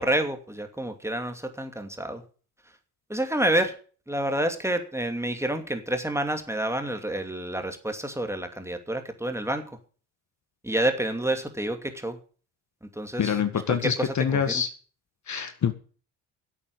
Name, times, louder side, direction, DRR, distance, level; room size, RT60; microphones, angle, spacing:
voice 1, 0.0-2.2 3.1-3.8 4.1-9.7 10.6-12.2 12.8-13.3 13.7-14.6, right 1 dB, 5° right, 6 dB, 2.6 m, -28 dB
voice 2, 13.2-14.7 15.3-15.7, left 7 dB, 40° left, 9 dB, 1.7 m, -25 dB
11.0 x 8.6 x 8.3 m, 0.40 s
hypercardioid pair, 55°, 44 cm